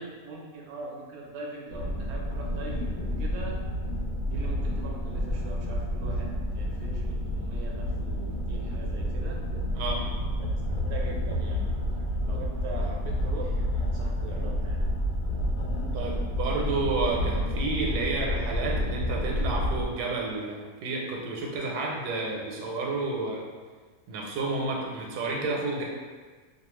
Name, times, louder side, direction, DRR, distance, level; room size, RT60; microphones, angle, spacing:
voice 1, 0.0-3.6 4.3-9.4 10.6-14.8, right 3 dB, 65° right, -2 dB, 0.6 m, -42 dB
sound 1, 1.7-19.8, equal, 65° left, 0.9 m, -30 dB
voice 2, 9.7-10.1 15.9-23.4 24.1-25.8, right 3 dB, 90° right, -1 dB, 1.1 m, -30 dB
2.7 x 2.2 x 3.0 m, 1.4 s
omnidirectional pair, 1.7 m